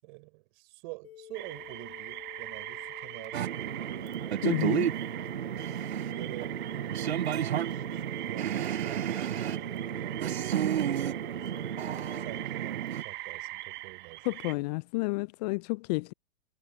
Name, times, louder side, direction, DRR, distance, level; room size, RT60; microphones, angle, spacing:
voice 1, 0.0-4.1 4.5-4.8 5.0-5.3 6.1-11.7 12.2-14.6, right 28 dB, 50° right, 5.7 m, -47 dB
sound 1, 1.0-12.5, left 11 dB, 65° left, 5.2 m, -50 dB
sound 2, 1.3-14.5, right 16 dB, 35° right, 1.7 m, -42 dB
sound 3, 3.3-13.0, right 10 dB, 80° right, 0.7 m, -32 dB
voice 2, 4.4-4.9 14.2-16.1, left 24 dB, 40° left, 0.4 m, -30 dB
hypercardioid pair, 105°, 31 cm